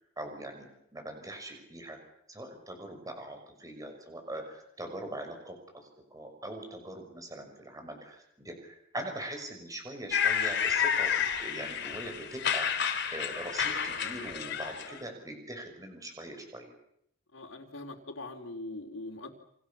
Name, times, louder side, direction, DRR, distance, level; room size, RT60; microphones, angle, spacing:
voice 1, 0.0-2.0 2.3-16.7, right 1 dB, 15° right, 5 dB, 6.2 m, -42 dB
sound 1, 10.1-15.0, left 7 dB, 60° left, 3.1 m, -30 dB
voice 2, 17.3-19.3, left 2 dB, 75° left, 2 dB, 4.0 m, -42 dB
29.0 x 26.5 x 7.2 m, 0.74 s
head